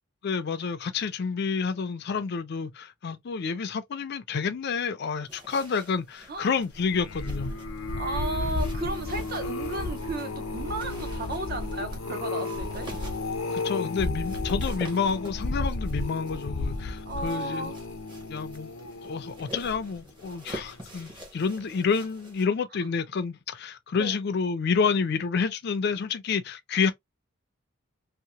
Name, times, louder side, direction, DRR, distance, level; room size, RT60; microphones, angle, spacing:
voice 1, 0.2-7.5 13.5-17.7 18.3-18.7 19.0-26.9, left 5 dB, 50° left, 0.4 m, -29 dB
sound 1, 5.2-22.5, right 1 dB, 20° right, 0.9 m, -47 dB
sound 2, 6.8-20.1 20.6-21.0 21.2-21.3, left 2 dB, 90° left, 0.7 m, -33 dB
voice 2, 8.0-12.9 17.1-17.8 24.0-24.2, right 2 dB, 45° right, 0.6 m, -34 dB
2.8 x 2.1 x 2.8 m
head